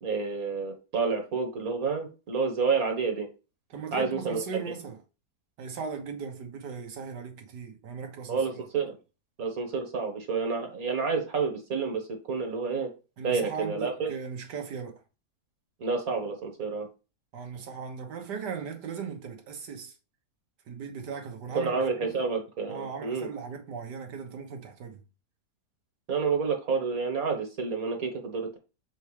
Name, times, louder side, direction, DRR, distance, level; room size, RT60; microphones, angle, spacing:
voice 1, 0.0-3.3 3.9-4.4 8.3-9.0 9.4-12.9 13.2-14.1 15.8-16.9 21.5-23.3 26.1-28.6, right 5 dB, 60° right, 1.7 m, -29 dB
voice 2, 3.7-5.0 5.6-8.4 13.2-15.0 17.3-20.0 20.7-21.7 22.0-22.1 22.7-25.0, right 6 dB, 85° right, 1.8 m, -38 dB
7.1 x 4.5 x 3.2 m
omnidirectional pair, 1.8 m